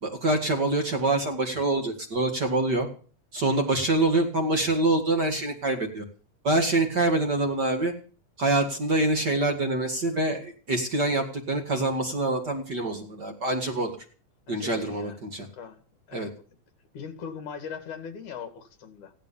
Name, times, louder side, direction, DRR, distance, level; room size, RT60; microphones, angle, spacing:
voice 1, 0.0-2.9 3.3-6.0 6.4-7.9 8.4-14.0 14.5-15.5 16.1-16.3, right 2 dB, 35° right, 2.2 m, -25 dB
voice 2, 14.5-15.8 16.1-16.3 16.9-19.1, left 6 dB, 70° left, 3.3 m, -40 dB
16.0 x 11.5 x 7.1 m
omnidirectional pair, 3.6 m